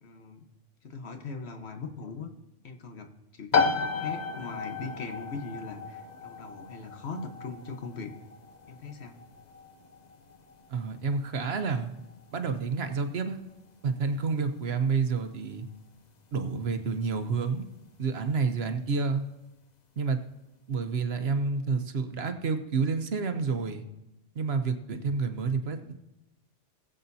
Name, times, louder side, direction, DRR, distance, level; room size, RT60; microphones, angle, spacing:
voice 1, 0.0-0.5 0.8-2.3 2.6-3.1 3.3-8.1 8.7-9.2, left 4 dB, 60° left, 5 dB, 1.4 m, -40 dB
sound 1, 3.5-18.0, left 5 dB, 40° left, 0.8 m, -35 dB
voice 2, 10.7-12.0 12.3-13.4 13.8-15.7 16.3-17.7 18.0-19.2 20.0-20.2 20.7-23.8 24.3-25.9, right 4 dB, 60° right, 7 dB, 1.1 m, -29 dB
20.5 x 7.8 x 2.7 m, 0.97 s
omnidirectional pair, 1.2 m